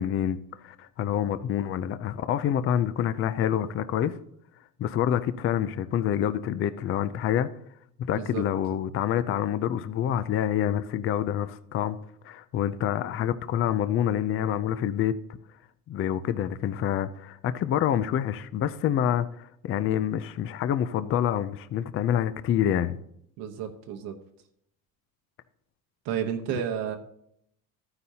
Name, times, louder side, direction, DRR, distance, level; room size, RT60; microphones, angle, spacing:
voice 1, 0.0-4.2 4.8-7.5 8.1-12.0 12.2-15.2 15.9-23.0, left 10 dB, 35° left, 0.5 m, -27 dB
voice 2, 23.4-24.1 26.0-27.0, right 9 dB, 75° right, 1.2 m, -31 dB
13.5 x 9.7 x 2.8 m
cardioid pair, 135°, 36 cm